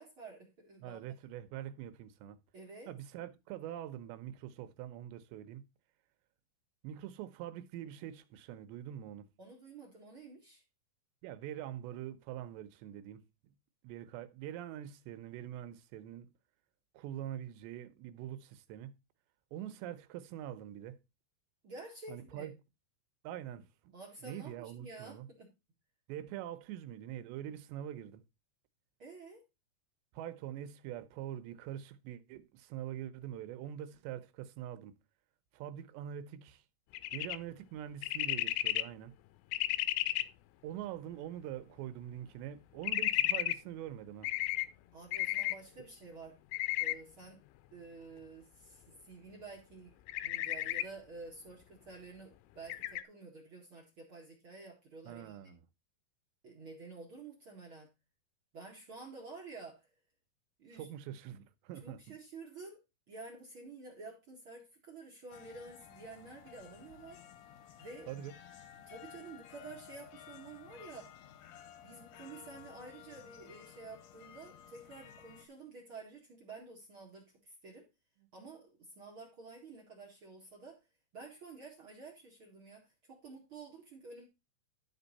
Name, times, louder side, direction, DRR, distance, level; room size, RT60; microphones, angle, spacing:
voice 1, 0.0-1.0 2.5-2.9 9.4-10.6 21.6-22.5 23.9-25.5 29.0-29.4 44.9-46.4 46.8-47.4 47.7-55.4 56.4-57.9 58.5-59.9 60.6-60.9 61.8-62.8 63.1-67.2 67.8-68.2 68.9-71.2 71.8-77.9 78.3-80.9 81.1-84.2, right 3 dB, 45° right, 1.7 m, -50 dB
voice 2, 0.8-2.4 2.9-5.6 6.8-9.3 11.2-13.3 13.8-16.3 16.9-18.9 19.5-21.0 22.1-22.5 23.2-23.9 24.2-25.3 26.1-28.2 30.1-35.0 35.5-36.6 37.1-39.1 40.6-44.3 55.1-55.6 60.7-62.0 68.1-68.3, right 11 dB, 90° right, 3.0 m, -44 dB
sound 1, 36.9-37.4 38.0-38.8 39.5-40.2 42.8-43.6 44.2-44.7 45.1-45.6 46.5-47.0 50.1-50.8 52.7-53.0, left 16 dB, 85° left, 2.8 m, -33 dB
sound 2, 65.3-75.5, left 10 dB, 70° left, 2.1 m, -54 dB
12.5 x 4.5 x 4.0 m
omnidirectional pair, 4.9 m